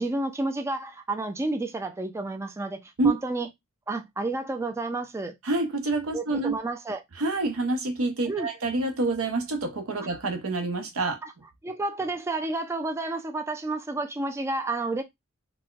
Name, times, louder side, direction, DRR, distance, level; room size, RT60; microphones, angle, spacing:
voice 1, 0.0-3.5 3.9-5.3 6.1-7.0 8.3-8.5 11.2-11.3 11.6-15.0, right 2 dB, 15° right, 0.3 m, -30 dB
voice 2, 5.4-6.5 7.2-11.2, right 2 dB, 85° right, 0.7 m, -27 dB
4.0 x 2.1 x 2.3 m
head